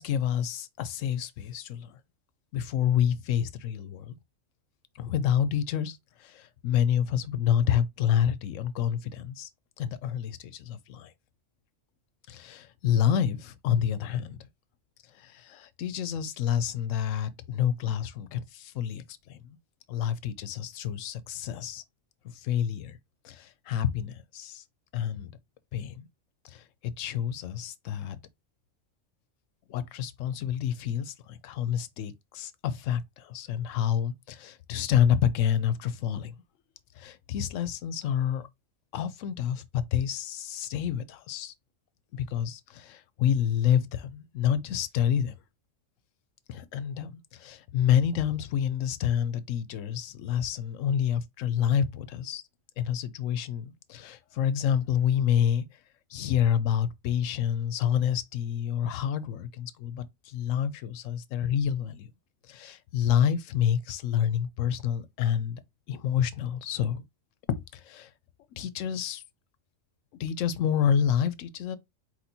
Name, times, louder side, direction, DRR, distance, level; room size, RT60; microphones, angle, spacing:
voice 1, 0.0-2.0 2.5-4.1 5.0-9.5 9.8-11.1 12.3-14.4 15.2-19.6 19.9-21.8 22.3-23.0 23.2-24.6 24.9-25.3 25.7-26.1 26.4-28.2 29.7-36.3 37.0-38.5 38.9-41.5 42.1-45.3 46.5-52.4 52.8-55.6 56.1-62.1 62.5-65.6 65.9-67.0 67.5-68.1 68.6-69.2 70.2-71.8, left 9 dB, 85° left, 1.0 m, -28 dB
4.5 x 4.3 x 2.7 m
omnidirectional pair, 1.3 m